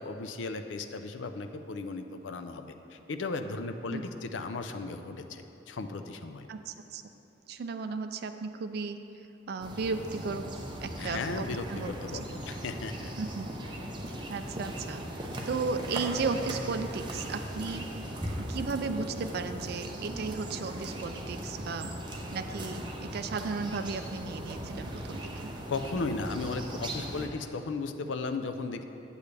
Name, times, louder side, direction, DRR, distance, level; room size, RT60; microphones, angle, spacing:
voice 1, 0.0-2.7 2.9-6.5 11.0-13.1 17.6-17.8 25.7-28.8, left 3 dB, 75° left, 8 dB, 0.5 m, -36 dB
voice 2, 6.5-7.0 7.5-9.0 9.5-10.5 10.8-12.2 13.2-13.5 14.3-17.9 18.4-21.9 22.3-25.5, right 4 dB, 55° right, 8 dB, 0.4 m, -35 dB
sound 1, 9.6-27.3, right 1 dB, 25° right, 0.8 m, -38 dB
8.5 x 8.1 x 3.3 m, 2.9 s
head